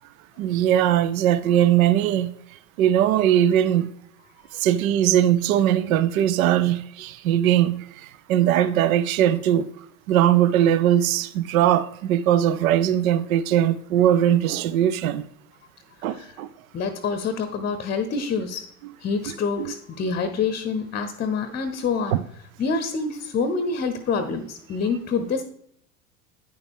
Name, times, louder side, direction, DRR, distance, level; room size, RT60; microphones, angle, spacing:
voice 1, 0.4-2.3 2.8-3.9 4.6-7.8 8.3-9.7 10.1-15.2 16.0-16.5 19.6-19.7 22.1-22.2, right 11 dB, 70° right, 0.6 m, -20 dB
voice 2, 16.7-18.7 19.0-22.2 22.6-25.4, left 5 dB, 20° left, 0.7 m, -26 dB
9.0 x 6.8 x 3.5 m
hypercardioid pair, 90°, 44 cm